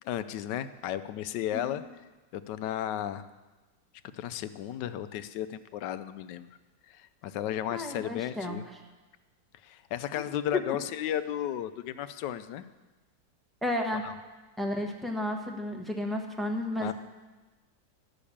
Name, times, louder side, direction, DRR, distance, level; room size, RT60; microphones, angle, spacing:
voice 1, 0.0-1.8 2.3-3.2 4.1-6.5 6.9-8.6 9.6-12.6 14.0-14.1 16.8-16.9, left 11 dB, 80° left, 12 dB, 1.2 m, -34 dB
voice 2, 1.5-1.8 7.7-8.6 10.5-10.6 13.6-14.1 14.6-16.9, left 1 dB, ahead, 1 dB, 1.0 m, -32 dB
12.5 x 6.6 x 8.5 m, 1.2 s
omnidirectional pair, 1.9 m